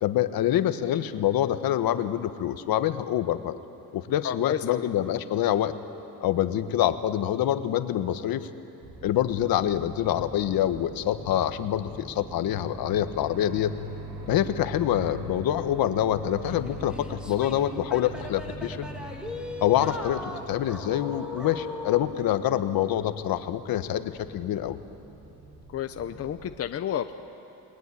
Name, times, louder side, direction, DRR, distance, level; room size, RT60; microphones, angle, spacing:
voice 1, 0.0-3.6 3.9-5.7 6.2-8.5 9.0-13.7 14.3-18.9 19.6-24.8, left 11 dB, 70° left, 10 dB, 1.3 m, -26 dB
voice 2, 4.2-4.9 25.7-27.1, left 9 dB, 40° left, 8 dB, 0.8 m, -31 dB
sound 1, 8.8-26.6, right 1 dB, 55° right, 6.4 m, -43 dB
sound 2, 16.4-22.1, left 2 dB, ahead, 2.2 m, -38 dB
29.0 x 20.5 x 9.9 m, 2.9 s
cardioid pair, 160°, 37 cm